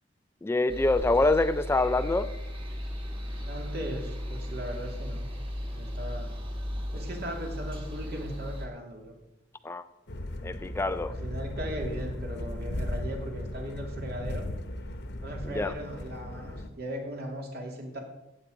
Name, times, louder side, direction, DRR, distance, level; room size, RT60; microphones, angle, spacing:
voice 1, 0.4-2.3 9.6-9.8 10.4-11.1 15.4-15.7, left 2 dB, 15° left, 12 dB, 0.3 m, -25 dB
sound 1, 0.7-8.7, equal, 30° right, 1.9 m, -36 dB
voice 2, 3.4-5.3 5.7-6.3 6.9-9.2 11.1-14.5 15.2-18.0, equal, 55° right, 1 dB, 2.7 m, -38 dB
sound 2, 10.1-16.7, left 1 dB, 60° left, 1.1 m, -36 dB
14.5 x 8.8 x 5.0 m, 0.96 s
head